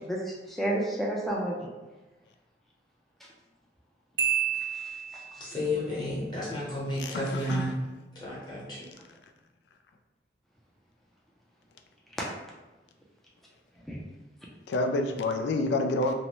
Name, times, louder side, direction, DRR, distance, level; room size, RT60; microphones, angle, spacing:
voice 1, 0.0-1.7 4.6-5.6 6.1-6.6 9.0-9.1 13.9-14.0, right 1 dB, ahead, -4 dB, 0.4 m, -33 dB
Marimba xylophone, 4.2-5.6, right 8 dB, 70° right, 0.3 m, -30 dB
voice 2, 5.4-7.7 8.1-8.9, left 1 dB, 25° left, -7 dB, 0.9 m, -32 dB
voice 3, 7.0-7.8 14.7-16.1, left 2 dB, 75° left, 4 dB, 0.3 m, -28 dB
2.6 x 2.1 x 2.9 m, 1.1 s
head